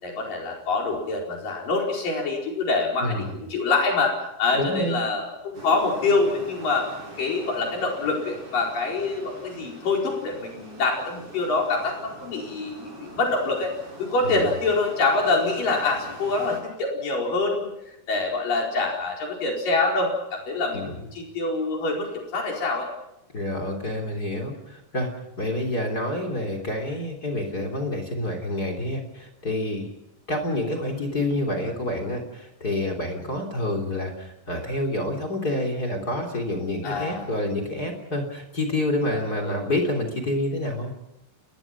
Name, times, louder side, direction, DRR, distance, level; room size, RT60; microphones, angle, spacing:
voice 1, 0.0-13.7 14.0-17.7 18.1-20.8 21.1-22.9 36.8-37.3 39.1-39.6, left 3 dB, 75° left, 0 dB, 6.3 m, -25 dB
voice 2, 3.0-3.3 4.5-5.0 14.2-14.5 20.7-21.0 23.3-25.1 25.4-29.9 30.3-40.9, left 1 dB, 25° left, 4 dB, 3.7 m, -28 dB
sound 1, 5.5-16.6, right 1 dB, 40° right, 8.8 m, -43 dB
29.5 x 21.0 x 6.1 m, 0.90 s
omnidirectional pair, 4.0 m